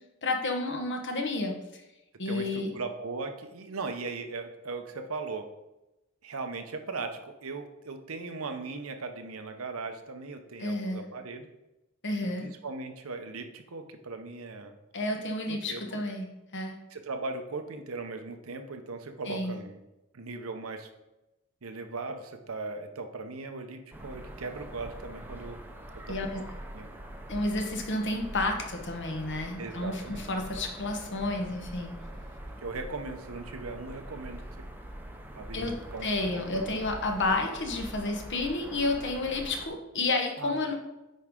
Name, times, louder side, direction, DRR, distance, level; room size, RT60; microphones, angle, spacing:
voice 1, 0.2-1.5 2.2-2.7 10.6-11.0 12.0-12.4 14.9-16.3 16.5-16.8 19.3-19.5 26.1-26.3 27.3-31.9 35.5-35.8 36.0-40.7, left 2 dB, 60° left, 3 dB, 1.2 m, -30 dB
voice 2, 2.3-5.5 6.2-11.5 12.2-14.8 15.5-15.8 16.9-19.8 20.1-20.9 21.6-25.6 26.1-26.4 26.7-26.9 29.6-30.3 32.4-34.4 35.3-36.8 40.4-40.5, right 3 dB, 75° right, 6 dB, 0.9 m, -38 dB
sound 1, 23.9-39.7, right 1 dB, 10° right, 0.8 m, -43 dB
9.2 x 4.8 x 3.7 m, 0.97 s
head